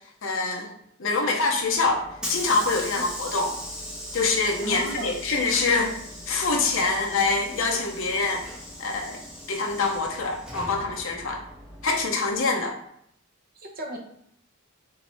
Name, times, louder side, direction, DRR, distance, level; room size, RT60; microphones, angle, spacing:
voice 1, 0.2-0.7 1.0-2.0 2.3-3.6 4.1-5.9 6.3-8.5 8.8-9.2 9.5-11.4 11.8-12.7, left 3 dB, 65° left, 1 dB, 0.7 m, -25 dB
Hiss / Sliding door, 1.5-12.4, equal, 5° right, 1.1 m, -39 dB
voice 2, 4.6-5.1 13.6-14.0, right 2 dB, 45° right, 0 dB, 0.9 m, -34 dB
5.6 x 2.7 x 3.3 m, 0.71 s
head